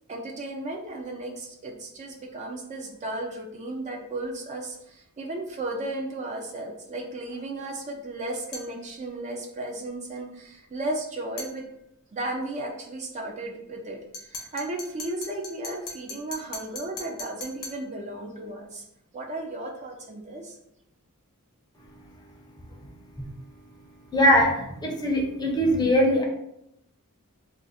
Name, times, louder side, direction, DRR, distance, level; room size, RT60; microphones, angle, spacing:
voice 1, 0.1-11.6 12.1-18.8 19.1-20.6, right 2 dB, 30° right, 1 dB, 0.4 m, -35 dB
sound 1, 8.5-8.8 11.4-11.6 14.1-17.9, left 3 dB, 70° left, 0.9 m, -39 dB
voice 2, 24.1-26.2, equal, 20° left, 0 dB, 0.6 m, -21 dB
2.5 x 2.4 x 4.0 m, 0.80 s
head